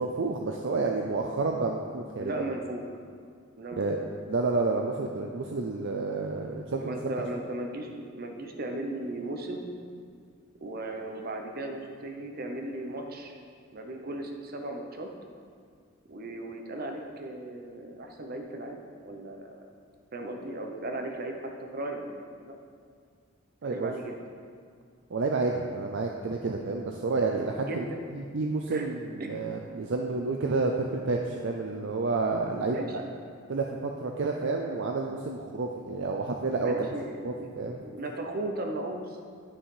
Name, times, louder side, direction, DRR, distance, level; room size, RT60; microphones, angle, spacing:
voice 1, 0.0-2.3 3.7-4.0 4.3-7.1 23.6-23.9 25.1-27.8 28.1-32.9 33.5-36.7 37.2-37.8, right 3 dB, 65° right, 1 dB, 0.5 m, -30 dB
voice 2, 2.2-2.8 3.6-3.9 6.4-6.5 6.8-9.7 10.6-13.4 13.7-15.1 16.1-19.7 20.1-22.6 23.6-24.1 27.6-28.0 28.7-28.9 29.2-29.4 32.7-33.2 36.6-37.5 37.8-39.2, right 1 dB, 50° right, 3 dB, 0.9 m, -36 dB
9.9 x 5.7 x 4.9 m, 2.1 s
head